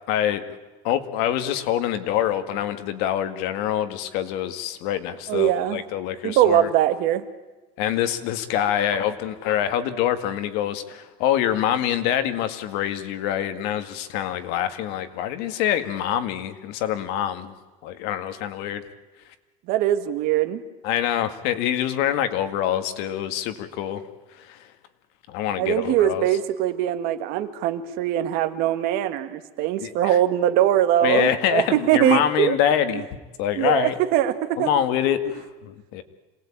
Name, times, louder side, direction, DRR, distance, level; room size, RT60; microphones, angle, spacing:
voice 1, 0.1-0.4 0.8-6.7 7.8-17.5 17.8-18.8 20.8-24.0 24.4-24.7 25.3-26.3 29.8-30.2 31.0-33.1 33.4-33.9 34.6-36.0, left 10 dB, 70° left, 10 dB, 2.0 m, -25 dB
voice 2, 5.3-5.8 6.2-7.3 19.7-20.6 25.6-32.5 33.5-34.7, right 12 dB, 60° right, 10 dB, 1.8 m, -22 dB
26.5 x 19.5 x 8.8 m, 1.2 s
cardioid pair, 160°, 17 cm